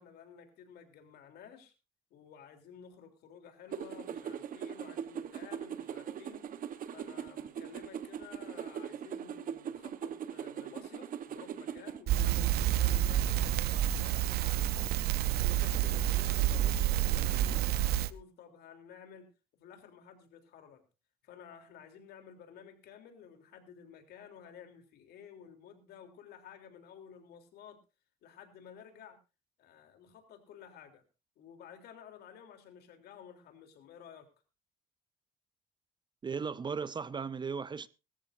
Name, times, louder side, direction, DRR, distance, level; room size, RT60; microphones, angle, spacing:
voice 1, 0.0-1.7 2.1-6.5 6.9-14.9 15.4-19.3 19.5-20.8 21.2-27.8 28.2-29.2 29.6-31.0 31.4-34.3, left 8 dB, 70° left, 3.4 m, -53 dB
sound 1, 3.7-12.0, right 8 dB, 55° right, 1.2 m, -41 dB
Crackle, 12.1-18.1, right 12 dB, 70° right, 0.7 m, -29 dB
voice 2, 36.2-37.9, right 5 dB, 25° right, 0.6 m, -36 dB
21.0 x 14.0 x 2.6 m
cardioid pair, 110°, 17 cm